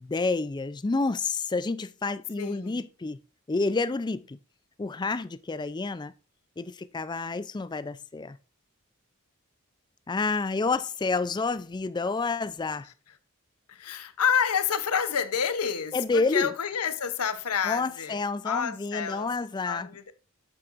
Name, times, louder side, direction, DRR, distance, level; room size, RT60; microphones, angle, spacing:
voice 1, 0.0-3.2 3.5-4.4 4.8-6.1 6.6-8.4 10.1-12.9 15.9-16.5 17.6-19.9, left 3 dB, 20° left, 0.3 m, -29 dB
voice 2, 2.4-2.8 13.7-19.3 19.6-20.1, left 7 dB, 90° left, 0.8 m, -29 dB
8.6 x 7.7 x 2.5 m
head